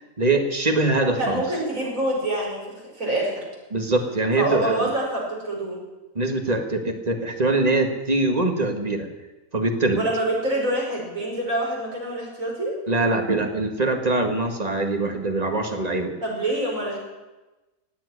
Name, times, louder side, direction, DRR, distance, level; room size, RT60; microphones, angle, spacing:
voice 1, 0.0-1.4 3.7-4.9 6.2-9.1 9.5-10.0 12.9-16.1, right 2 dB, 25° right, 4 dB, 1.9 m, -23 dB
voice 2, 1.2-3.3 4.4-5.8 10.0-12.7 16.2-17.0, right 1 dB, 60° right, -3 dB, 5.5 m, -26 dB
18.0 x 7.7 x 9.9 m, 1.1 s
omnidirectional pair, 1.6 m